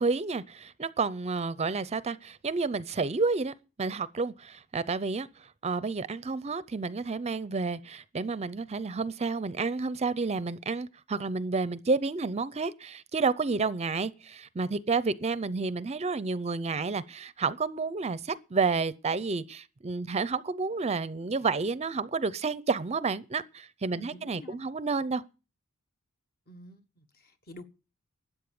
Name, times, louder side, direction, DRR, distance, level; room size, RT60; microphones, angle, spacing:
voice 1, 0.0-3.5 3.8-25.2, right 4 dB, 30° right, 0.5 m, -30 dB
voice 2, 23.9-24.6 26.5-27.6, left 2 dB, 45° left, 1.5 m, -49 dB
13.0 x 8.6 x 7.0 m
head